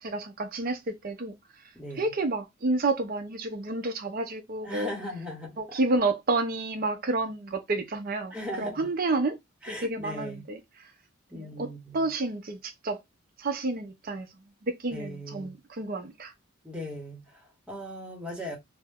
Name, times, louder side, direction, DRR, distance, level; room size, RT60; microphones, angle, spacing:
voice 1, 0.0-1.3 2.0-4.9 5.6-9.4 9.7-10.9 11.3-13.0 13.4-14.3 14.6-16.3, right 2 dB, 45° right, 0.5 m, -30 dB
voice 2, 1.7-2.1 4.6-5.8 8.3-8.9 9.6-10.4 11.3-12.1 14.9-15.6 16.6-18.6, equal, 5° right, 0.9 m, -38 dB
2.8 x 2.1 x 3.4 m
head